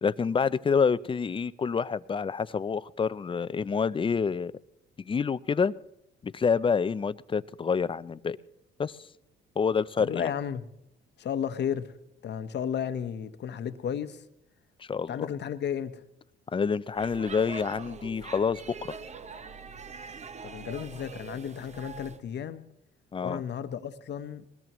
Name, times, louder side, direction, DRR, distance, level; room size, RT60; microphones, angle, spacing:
voice 1, 0.0-4.5 5.0-5.7 6.2-8.4 8.8-9.0 9.6-10.3 14.8-15.3 16.5-18.9 23.1-23.4, left 6 dB, 25° left, 0.5 m, -27 dB
voice 2, 10.0-10.6 11.2-11.8 12.2-14.2 15.1-16.0 20.4-22.6 23.2-24.4, left 8 dB, 55° left, 1.0 m, -33 dB
Speech / Shout / Subway metro underground, 16.9-22.2, right 5 dB, 35° right, 0.8 m, -43 dB
21.0 x 20.0 x 3.1 m
cardioid pair, 85°, 21 cm